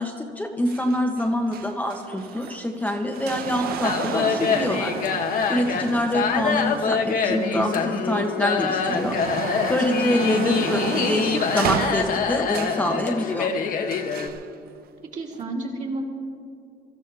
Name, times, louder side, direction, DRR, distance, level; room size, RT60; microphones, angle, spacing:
voice 1, 0.0-4.9 5.5-13.5, left 1 dB, 10° left, 2 dB, 1.1 m, -26 dB
sound 1, 0.7-7.9 8.3-12.9 13.9-14.4 15.3-15.4, right 9 dB, 65° right, 0.8 m, -33 dB
sound 2, 3.8-14.3, left 6 dB, 55° left, 1.2 m, -25 dB
voice 2, 7.2-8.0 10.3-10.7 15.1-16.0, right 3 dB, 45° right, -2 dB, 3.1 m, -32 dB
23.5 x 14.0 x 3.4 m, 2.3 s
cardioid pair, 110°, 17 cm